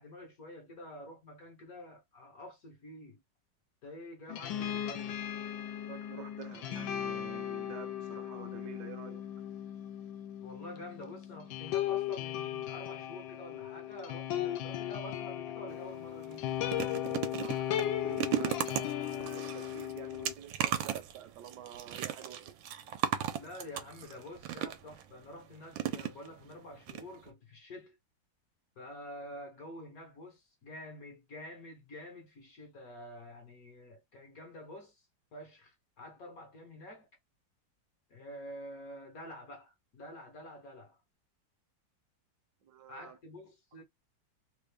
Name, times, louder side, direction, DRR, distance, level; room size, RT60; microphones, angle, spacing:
voice 1, 0.0-3.2 3.8-5.2 10.4-16.5 23.3-28.0 28.8-35.1 35.3-37.1 38.1-41.0 42.9-43.8, left 1 dB, 60° left, 1.1 m, -48 dB
sound 1, 4.3-20.3, left 11 dB, 85° left, 1.3 m, -37 dB
voice 2, 5.8-9.2 17.0-22.6 42.6-43.2, right 9 dB, 70° right, 1.3 m, -49 dB
sound 2, 15.7-15.9 16.2-25.0 25.7-26.5 26.9-27.0 27.3-27.4, right 10 dB, 85° right, 1.4 m, -36 dB
3.3 x 2.5 x 3.3 m
omnidirectional pair, 2.0 m